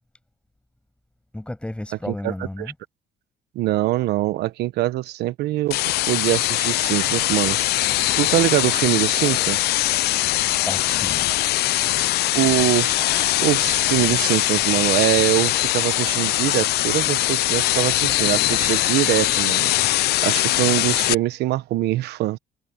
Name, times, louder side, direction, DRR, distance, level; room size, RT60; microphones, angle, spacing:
voice 1, 1.3-2.7 10.7-11.2, left 1 dB, 5° left, 7.1 m, -32 dB
voice 2, 2.1-2.7 3.5-5.8 6.1-7.9 8.1-9.7 12.3-19.7 20.2-22.4, right 16 dB, 80° right, 1.1 m, -23 dB
sound 1, 5.7-21.1, left 16 dB, 70° left, 0.6 m, -21 dB
cardioid pair, 110°, 17 cm